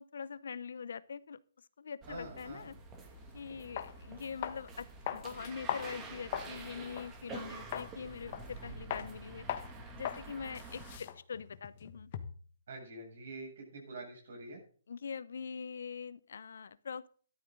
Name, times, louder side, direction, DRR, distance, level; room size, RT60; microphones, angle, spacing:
voice 1, 0.0-1.4 1.8-2.7 3.3-9.5 9.9-12.1 14.9-17.1, left 6 dB, 65° left, 18 dB, 0.8 m, -43 dB
sound 1, 2.0-11.0, right 3 dB, 20° right, 2.3 m, -48 dB
voice 2, 2.1-2.7 12.7-14.6, right 2 dB, 65° right, 0 dB, 7.5 m, -46 dB
sound 2, 3.2-3.3 3.8-3.9 4.4-4.7 5.1-6.6 7.0-7.1 7.7-7.9 8.3-8.6 8.9-9.1 9.5-9.7 10.0-10.2 10.5-12.5, left 10 dB, 40° left, 1.4 m, -39 dB
13.5 x 12.0 x 3.9 m, 0.44 s
hypercardioid pair, 145°, 0 cm